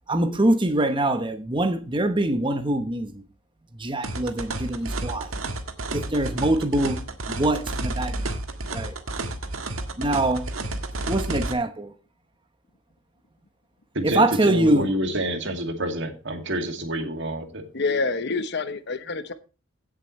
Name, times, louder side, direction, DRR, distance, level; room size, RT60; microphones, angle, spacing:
voice 1, 0.1-3.2 3.8-5.3 5.9-7.0 7.3-8.2 8.7-9.0 10.0-10.4 11.1-11.9 14.0-14.9, right 1 dB, 25° right, 1.0 m, -23 dB
sound 1, 4.0-11.5, right 2 dB, 85° right, 1.6 m, -31 dB
voice 2, 13.9-17.7, right 1 dB, 60° right, 2.3 m, -28 dB
voice 3, 17.7-19.3, left 3 dB, 55° left, 1.0 m, -27 dB
16.5 x 7.6 x 3.2 m
head